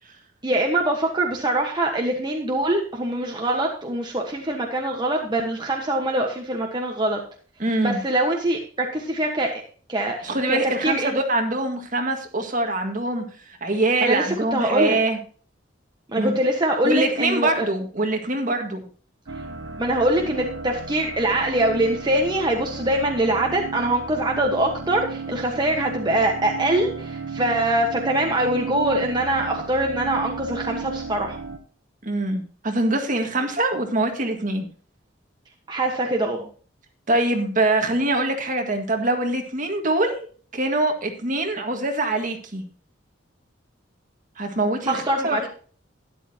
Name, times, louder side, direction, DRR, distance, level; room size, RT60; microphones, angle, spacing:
voice 1, 0.4-7.2 7.8-9.5 9.9-11.2 14.0-15.0 16.1-17.7 19.8-31.4 35.7-36.5 44.9-45.5, right 1 dB, 25° right, 1 dB, 1.3 m, -23 dB
voice 2, 7.6-8.0 10.2-13.3 13.6-15.2 16.2-16.3 16.8-18.8 32.0-34.6 37.1-40.2 40.5-42.6 44.4-45.5, right 2 dB, 45° right, 4 dB, 1.9 m, -23 dB
sound 1, 19.3-31.6, right 4 dB, 75° right, 1.1 m, -34 dB
12.5 x 11.0 x 2.9 m, 0.42 s
head